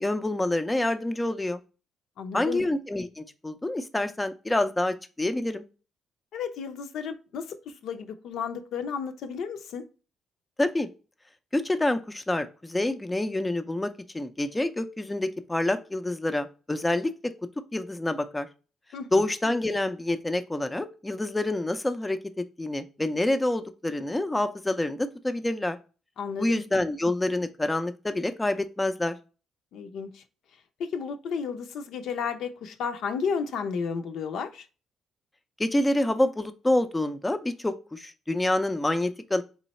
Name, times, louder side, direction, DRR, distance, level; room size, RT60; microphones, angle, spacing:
voice 1, 0.0-1.6 2.3-5.6 10.6-10.9 11.5-17.1 17.7-18.5 19.1-25.8 26.4-29.2 35.6-39.4, left 1 dB, 15° left, 0.4 m, -27 dB
voice 2, 2.2-2.7 6.3-9.8 18.9-19.2 26.2-26.6 29.7-30.2 30.8-34.6, left 6 dB, 75° left, 0.5 m, -33 dB
3.8 x 3.0 x 4.1 m
cardioid pair, 90°, 0 cm